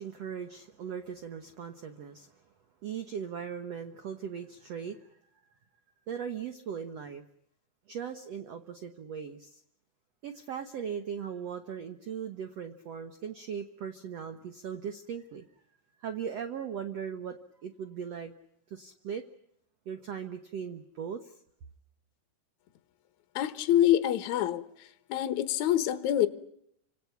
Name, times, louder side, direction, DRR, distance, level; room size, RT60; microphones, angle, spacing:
voice 1, 0.0-2.4 2.8-5.2 6.1-7.2 7.9-9.6 10.2-15.4 16.0-18.3 18.7-19.2 19.8-21.4, right 7 dB, 85° right, 7 dB, 1.4 m, -39 dB
voice 2, 23.4-24.6 25.1-26.3, left 12 dB, 65° left, 10 dB, 2.0 m, -25 dB
29.0 x 26.0 x 5.9 m, 0.75 s
omnidirectional pair, 4.8 m